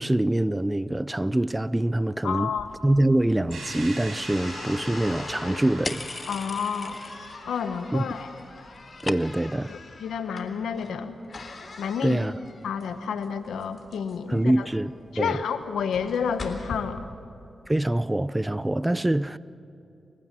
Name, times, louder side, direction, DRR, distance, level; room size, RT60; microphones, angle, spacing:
voice 1, 0.0-2.5 2.8-6.1 7.9-8.0 9.0-9.7 12.0-12.3 14.3-14.9 15.2-15.4 17.7-19.4, right 1 dB, 15° right, 0.6 m, -24 dB
voice 2, 2.2-2.7 6.3-7.0 7.4-8.3 9.7-11.2 11.8-12.2 12.6-14.7 15.1-17.1, left 6 dB, 85° left, 1.2 m, -30 dB
sound 1, 2.5-16.7, left 3 dB, 55° left, 3.6 m, -43 dB
sound 2, 3.5-8.3, right 2 dB, 75° right, 6.4 m, -42 dB
sound 3, 5.8-7.4 7.7-8.3 8.5-9.6, left 2 dB, 35° left, 1.0 m, -37 dB
29.0 x 15.0 x 7.5 m
cardioid pair, 50°, 0 cm